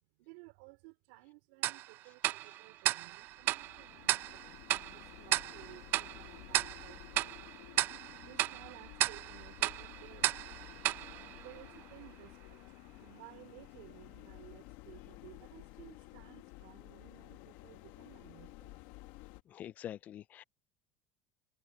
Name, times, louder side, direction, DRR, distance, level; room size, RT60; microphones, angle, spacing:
voice 1, 0.0-7.4 8.2-10.3 11.3-12.7 13.0-18.8, right 23 dB, 80° right, 4.0 m, -57 dB
Tick-tock, 1.6-12.1, right 16 dB, 40° right, 0.3 m, -35 dB
sound 1, 3.1-19.4, left 19 dB, 70° left, 1.4 m, -53 dB
voice 2, 19.5-20.4, left 11 dB, 30° left, 0.4 m, -45 dB
cardioid pair, 170°, 5 cm